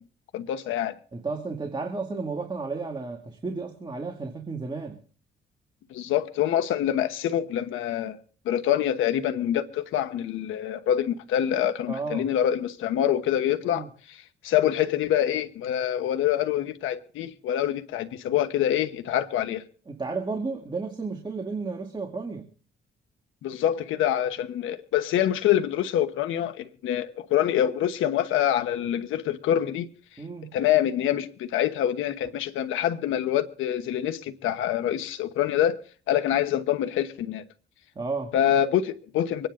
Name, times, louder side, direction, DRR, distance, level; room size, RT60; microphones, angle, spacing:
voice 1, 0.3-0.9 5.9-8.2 8.4-19.6 23.4-29.9 30.5-35.8 36.1-37.4 38.3-39.5, left 11 dB, 85° left, 1.2 m, -25 dB
voice 2, 1.1-5.0 11.9-12.3 13.7-13.9 19.9-22.5 30.2-30.5 38.0-38.3, right 4 dB, 25° right, 2.3 m, -33 dB
24.5 x 10.0 x 3.8 m
cardioid pair, 90°, 20 cm